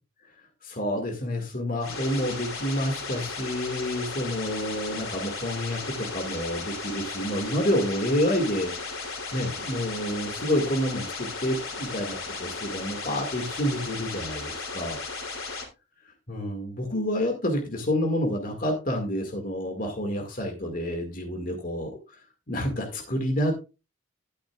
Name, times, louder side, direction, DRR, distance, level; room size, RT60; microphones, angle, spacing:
voice 1, 0.6-15.0 16.3-22.2 22.5-23.5, equal, 45° left, 3 dB, 2.0 m, -29 dB
sound 1, 1.8-15.6, left 4 dB, 90° left, 3.3 m, -35 dB
13.0 x 9.0 x 2.4 m, 0.28 s
head